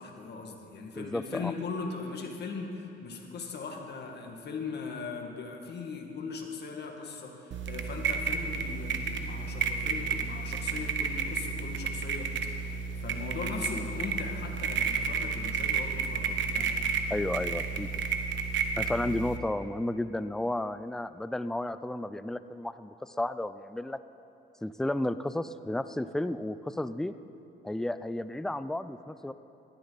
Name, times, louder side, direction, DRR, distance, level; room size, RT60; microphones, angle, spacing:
voice 1, 0.0-12.3 12.6-16.7, left 4 dB, 55° left, 2 dB, 2.1 m, -39 dB
voice 2, 1.0-1.5 17.1-17.9 18.8-24.0 24.6-27.1 27.6-29.3, left 1 dB, 5° left, 13 dB, 0.4 m, -32 dB
sound 1, 7.5-19.4, right 5 dB, 70° right, 1.1 m, -32 dB
18.5 x 13.0 x 4.1 m, 3.0 s
cardioid pair, 90°, 20 cm